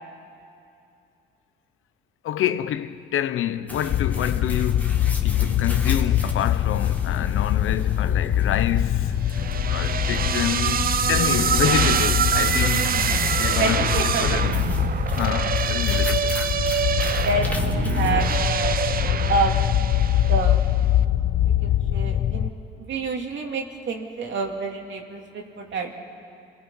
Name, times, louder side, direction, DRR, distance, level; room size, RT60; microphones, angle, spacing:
voice 1, 2.2-13.0 13.4-14.6 15.1-16.3, left 10 dB, 80° left, 0.9 m, -28 dB
sound 1, 3.7-18.5, left 1 dB, 5° left, 1.9 m, -37 dB
sound 2, 3.9-22.5, left 11 dB, 60° left, 0.5 m, -24 dB
sound 3, 9.3-20.6, right 7 dB, 45° right, 0.7 m, -25 dB
voice 2, 13.5-14.3 17.2-18.8 19.3-19.6 20.3-20.6 21.6-22.5 22.8-26.0, right 3 dB, 65° right, 2.7 m, -27 dB
28.0 x 20.0 x 5.6 m
cardioid pair, 100°, 21 cm